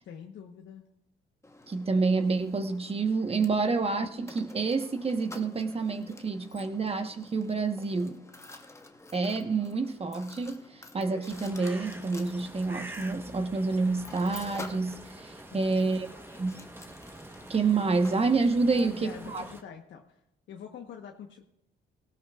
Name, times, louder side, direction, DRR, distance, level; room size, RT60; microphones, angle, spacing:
voice 1, 0.0-0.9 3.6-3.7 15.5-15.7 18.7-20.2 20.5-21.4, left 8 dB, 75° left, 2 dB, 1.2 m, -45 dB
Mechanisms, 1.4-19.6, left 2 dB, 15° left, 1.1 m, -50 dB
voice 2, 1.7-8.2 9.1-16.1 16.4-16.5 17.5-19.4, right 4 dB, 30° right, 7 dB, 1.2 m, -28 dB
sound 1, 11.3-19.6, right 1 dB, 10° right, 1.1 m, -46 dB
18.0 x 17.0 x 2.5 m, 0.84 s
cardioid pair, 90°, 20 cm